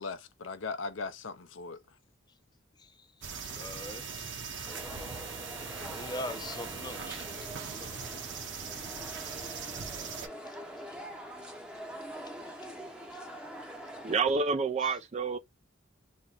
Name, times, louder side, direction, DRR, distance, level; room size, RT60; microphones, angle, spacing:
voice 1, 0.0-1.8 7.8-8.1, left 4 dB, 70° left, 0.6 m, -39 dB
sound 1, 3.2-10.3, right 5 dB, 65° right, 0.8 m, -40 dB
voice 2, 3.4-4.3 4.6-4.7 5.8-8.2 9.4-9.7 10.5-10.6 13.1-13.2 13.8-13.9, left 1 dB, 20° left, 0.5 m, -43 dB
sound 2, 4.7-14.2, equal, 5° right, 0.8 m, -44 dB
voice 3, 14.0-15.4, right 4 dB, 35° right, 0.4 m, -28 dB
3.0 x 2.7 x 3.8 m
head